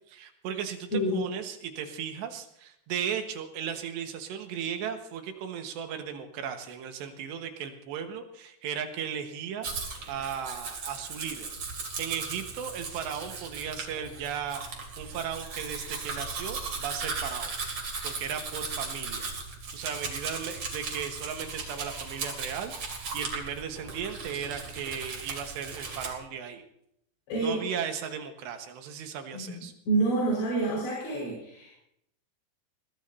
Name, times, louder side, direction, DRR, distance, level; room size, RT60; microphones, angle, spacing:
voice 1, 0.1-11.5 12.0-14.6 15.0-17.5 18.0-19.3 19.7-26.6 27.4-29.7, right 8 dB, 80° right, 5 dB, 3.5 m, -36 dB
voice 2, 0.9-1.3 27.3-27.6 29.3-29.6 29.9-31.7, right 2 dB, 80° left, -5 dB, 7.4 m, -28 dB
Domestic sounds home sounds, 9.6-26.1, right 4 dB, 40° right, 3.3 m, -37 dB
22.0 x 18.0 x 2.8 m, 0.74 s
omnidirectional pair, 5.1 m